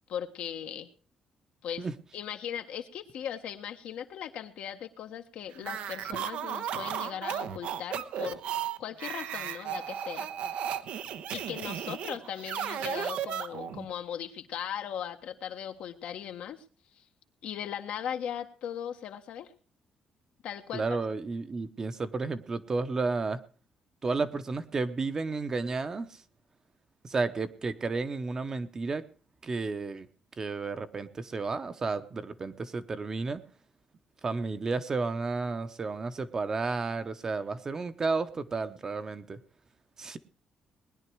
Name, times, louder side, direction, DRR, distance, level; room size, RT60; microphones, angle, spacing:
voice 1, 0.1-0.9 1.6-1.9 2.1-8.4 8.8-10.3 11.3-16.6 16.9-17.0 17.4-19.5 20.4-20.8, left 9 dB, 80° left, 6 dB, 1.4 m, -38 dB
sound 1, 5.6-13.9, right 9 dB, 85° right, 1.0 m, -35 dB
voice 2, 20.7-23.4 24.0-26.2 27.0-29.0 29.4-30.1 30.4-33.4 34.2-39.4 40.0-40.2, right 3 dB, 30° right, 10 dB, 0.8 m, -32 dB
20.0 x 10.5 x 4.6 m, 0.38 s
cardioid pair, 150°, 2 cm